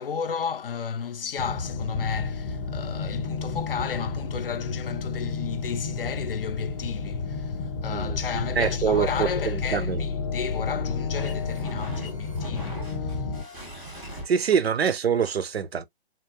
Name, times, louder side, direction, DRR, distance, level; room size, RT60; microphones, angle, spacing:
voice 1, 0.0-13.3, left 6 dB, 60° left, 0.6 m, -33 dB
sound 1, 1.4-13.4, left 4 dB, 30° left, 0.8 m, -31 dB
sound 2, 8.3-14.2, right 2 dB, 5° right, 0.4 m, -42 dB
voice 2, 8.6-10.0 14.3-15.8, right 7 dB, 70° right, 0.6 m, -25 dB
3.6 x 2.4 x 2.7 m
figure-of-eight pair, 135°, 32 cm